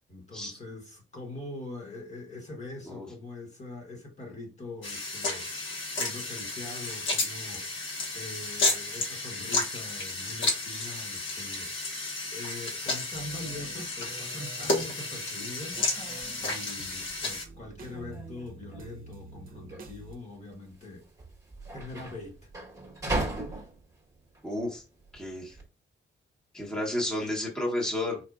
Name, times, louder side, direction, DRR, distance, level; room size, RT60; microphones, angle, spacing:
voice 1, 0.1-12.0 12.3-15.8 16.4-21.1 21.7-22.5 23.0-23.7, left 2 dB, 35° left, 1.5 m, -43 dB
sound 1, 4.8-17.4, left 3 dB, 65° left, 1.4 m, -32 dB
sound 2, 13.1-20.2, right 3 dB, 45° right, 0.8 m, -48 dB
sound 3, 15.6-25.7, right 2 dB, 15° right, 1.3 m, -39 dB
voice 2, 24.4-24.8 25.1-25.6 26.5-28.2, left 1 dB, 5° left, 1.1 m, -31 dB
4.6 x 4.2 x 2.4 m
wide cardioid pair, 170°, 21 cm